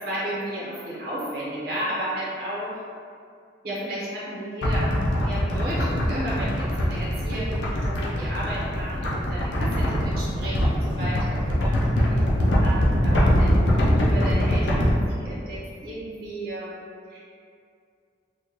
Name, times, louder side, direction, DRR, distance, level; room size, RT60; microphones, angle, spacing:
voice 1, 0.0-2.7 3.6-17.3, equal, 50° right, -9 dB, 0.9 m, -33 dB
sound 1, 4.6-14.9, equal, 75° left, 0.6 m, -23 dB
3.1 x 2.4 x 3.8 m, 2.3 s
head